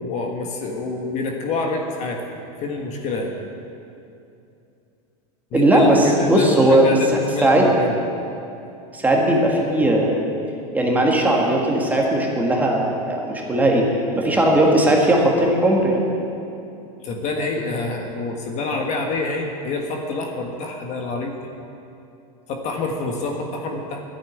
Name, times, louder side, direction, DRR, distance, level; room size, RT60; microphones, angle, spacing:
voice 1, 0.0-2.2 2.6-3.3 5.5-7.9 17.0-21.3 22.5-24.0, left 3 dB, 35° left, 2 dB, 1.5 m, -27 dB
voice 2, 5.5-6.8 7.1-7.7 8.9-10.2 10.7-13.9 14.1-16.0, right 1 dB, 10° right, -1 dB, 1.7 m, -18 dB
11.5 x 8.6 x 9.1 m, 2.7 s
supercardioid pair, 145°, 19 cm